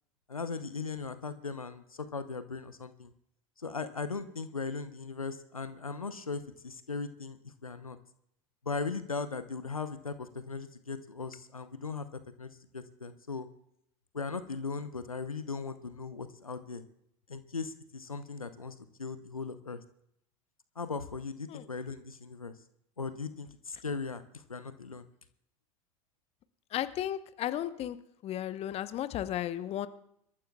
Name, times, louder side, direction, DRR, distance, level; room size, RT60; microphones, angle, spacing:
voice 1, 0.3-3.1 3.6-8.0 8.6-12.1 12.4-13.5 14.1-16.8 17.3-19.8 20.8-22.5 23.0-25.0, left 4 dB, 90° left, 12 dB, 0.8 m, -38 dB
voice 2, 26.7-28.0 28.2-29.9, left 12 dB, 35° left, 13 dB, 0.9 m, -34 dB
26.0 x 13.5 x 2.3 m, 0.75 s
figure-of-eight pair, 80°, 17 cm